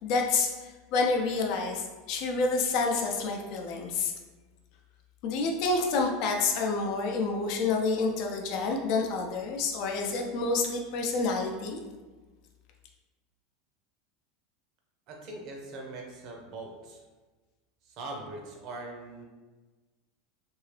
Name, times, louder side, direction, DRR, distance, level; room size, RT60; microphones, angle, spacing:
voice 1, 0.0-4.1 5.2-11.8, left 3 dB, 60° left, 1 dB, 0.6 m, -28 dB
voice 2, 15.1-17.0 17.8-19.2, right 2 dB, 55° right, 0 dB, 0.7 m, -41 dB
2.8 x 2.7 x 3.2 m, 1.3 s
hypercardioid pair, 95°, 0 cm